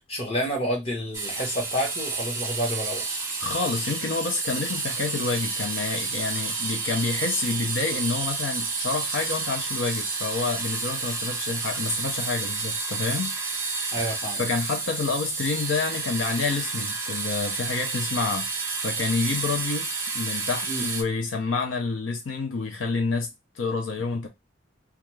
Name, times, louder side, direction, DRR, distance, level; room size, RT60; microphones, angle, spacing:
voice 1, 0.1-3.1 13.9-14.4 20.6-20.8, equal, 30° left, 1.0 m, -29 dB
sound 1, 1.1-21.0, right 4 dB, 15° right, 0.4 m, -30 dB
voice 2, 3.4-13.4 14.4-18.5 18.8-19.9 20.1-23.3 23.6-24.3, left 4 dB, 75° left, 0.5 m, -28 dB
2.4 x 2.3 x 3.1 m
head